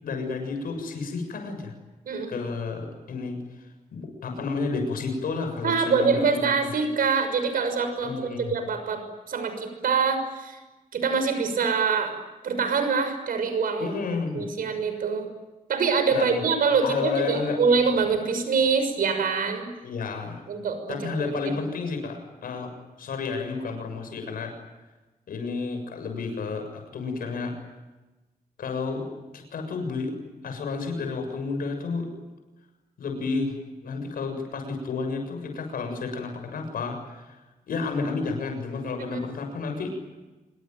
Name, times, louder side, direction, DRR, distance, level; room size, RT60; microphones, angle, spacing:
voice 1, 0.0-1.7 2.3-3.4 3.9-6.4 8.0-8.5 13.8-14.5 16.1-16.5 16.8-17.6 19.8-20.4 20.9-22.7 23.0-24.5 25.3-27.5 28.6-29.1 29.3-30.1 30.4-32.1 33.0-33.6 33.8-37.4 37.7-40.0, left 4 dB, 85° left, 5 dB, 7.0 m, -31 dB
voice 2, 5.6-10.6 10.9-12.1 12.4-13.9 14.3-15.3 15.7-19.7 20.5-21.5 39.1-39.2, right 5 dB, 80° right, 8 dB, 6.4 m, -25 dB
27.0 x 23.5 x 9.3 m, 1.1 s
wide cardioid pair, 145°, 15 cm